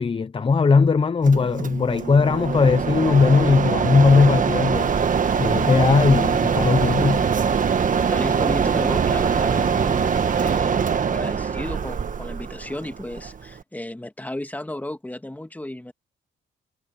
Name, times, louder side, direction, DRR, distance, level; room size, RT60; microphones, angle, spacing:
voice 1, 0.0-7.2, left 4 dB, 25° left, 0.8 m, -19 dB
Mechanisms, 1.2-13.6, right 6 dB, 40° right, 1.4 m, -23 dB
sound 1, 4.7-10.6, right 5 dB, 25° right, 0.8 m, -36 dB
voice 2, 8.1-15.9, left 1 dB, 10° left, 2.4 m, -34 dB
cardioid pair, 90°, 20 cm